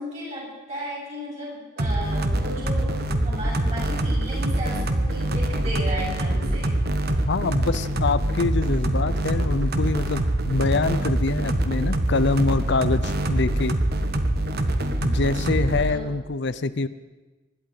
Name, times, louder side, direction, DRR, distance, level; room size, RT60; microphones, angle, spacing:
voice 1, 0.0-6.7 15.3-15.6 15.9-16.1, equal, 35° right, -5 dB, 7.6 m, -35 dB
sound 1, 1.8-15.9, right 1 dB, 55° right, 1.2 m, -24 dB
voice 2, 7.3-13.7 15.0-16.9, left 3 dB, 65° left, 13 dB, 0.6 m, -25 dB
24.5 x 11.5 x 4.9 m, 1.2 s
head